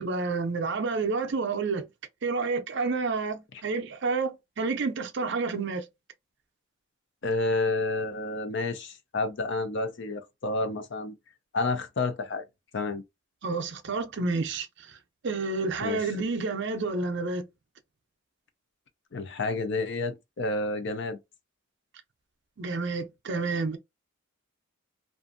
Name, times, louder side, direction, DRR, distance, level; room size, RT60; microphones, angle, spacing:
voice 1, 0.0-1.9 2.2-5.9 13.4-15.0 15.2-17.5 22.6-23.8, right 4 dB, 55° right, 0.5 m, -29 dB
voice 2, 7.2-11.1 11.5-12.4 12.7-13.0 15.8-16.0 19.1-21.2, left 3 dB, 55° left, 0.5 m, -30 dB
2.5 x 2.4 x 2.5 m
head